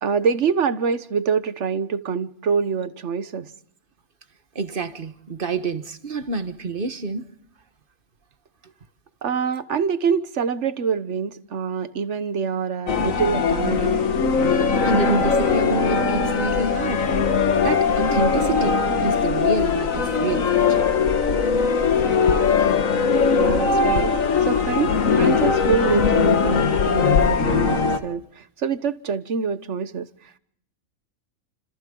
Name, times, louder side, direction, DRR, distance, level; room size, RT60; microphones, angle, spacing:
voice 1, 0.0-3.5 9.2-14.0 23.3-30.4, right 6 dB, 60° right, 1.3 m, -25 dB
voice 2, 4.5-7.3 8.6-8.7 14.8-17.1 17.6-20.8, right 3 dB, 40° right, 1.4 m, -28 dB
sound 1, 12.9-28.0, left 5 dB, 70° left, 1.8 m, -20 dB
30.0 x 27.0 x 3.8 m
omnidirectional pair, 1.5 m